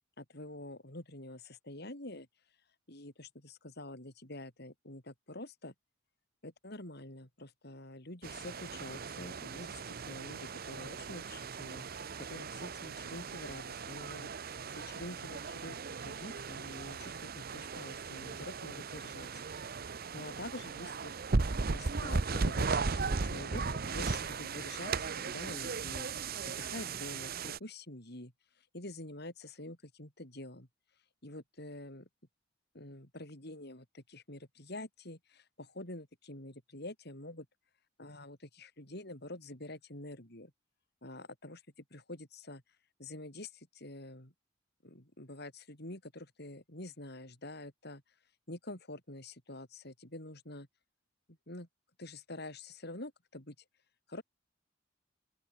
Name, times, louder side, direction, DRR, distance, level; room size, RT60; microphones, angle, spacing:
voice 1, 0.2-2.3 2.9-5.7 6.4-11.8 12.3-14.3 14.7-19.4 20.1-21.1 21.7-26.1 26.4-28.3 28.6-30.7 31.2-32.1 32.7-37.5 38.0-40.5 41.0-41.6 41.9-42.6 43.0-44.3 44.8-48.0 48.5-50.7 51.3-51.7 52.0-53.6 54.1-54.2, left 1 dB, 55° left, 6.8 m, -47 dB
sound 1, 8.2-27.6, right 4 dB, 50° right, 0.8 m, -37 dB
open air
head